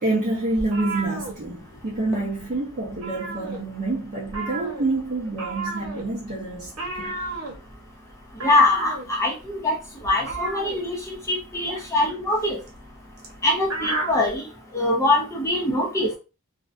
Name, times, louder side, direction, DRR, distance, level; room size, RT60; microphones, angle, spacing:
voice 1, 0.0-7.1 11.7-11.9, right 2 dB, 40° right, 0.6 m, -27 dB
sound 1, 0.5-2.1 2.3-2.6 2.8-3.9 4.3-14.4, right 3 dB, 85° right, 0.8 m, -33 dB
voice 2, 8.4-9.8 10.0-12.6 13.4-14.5 14.7-16.1, left 2 dB, 15° left, 0.5 m, -23 dB
2.5 x 2.1 x 2.4 m
head